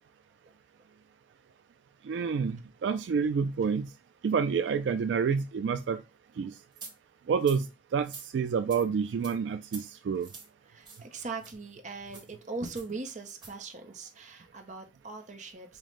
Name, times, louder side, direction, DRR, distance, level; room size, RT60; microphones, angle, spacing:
voice 1, 2.0-3.9 4.2-6.0 6.4-6.5 7.3-10.3, right 6 dB, 85° right, 0.3 m, -28 dB
sound 1, 6.8-6.9 7.4-7.6 8.0-8.3 8.7-8.8 9.2-9.4 9.7-9.8 10.2-10.5 10.8-11.1 11.4-11.5 12.1-12.3 12.8-12.9 13.3-13.5, right 4 dB, 25° right, 1.0 m, -46 dB
voice 2, 10.6-15.8, right 3 dB, 40° right, 0.6 m, -40 dB
5.5 x 2.1 x 3.1 m
head